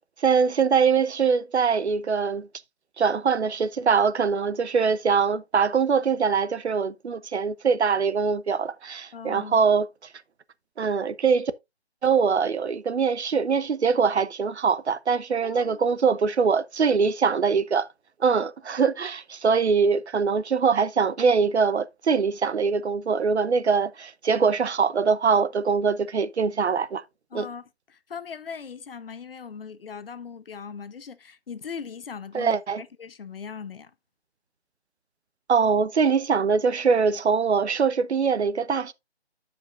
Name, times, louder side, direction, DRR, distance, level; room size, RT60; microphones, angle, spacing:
voice 1, 0.2-2.5 3.0-9.9 10.8-11.5 12.0-17.9 18.2-27.0 27.3-27.5 32.3-32.8 35.5-38.9, right 5 dB, 85° right, 0.8 m, -23 dB
voice 2, 9.1-9.6 15.4-15.9 27.3-33.9, left 6 dB, 60° left, 0.9 m, -39 dB
13.0 x 5.1 x 2.4 m
figure-of-eight pair, 160°, 33 cm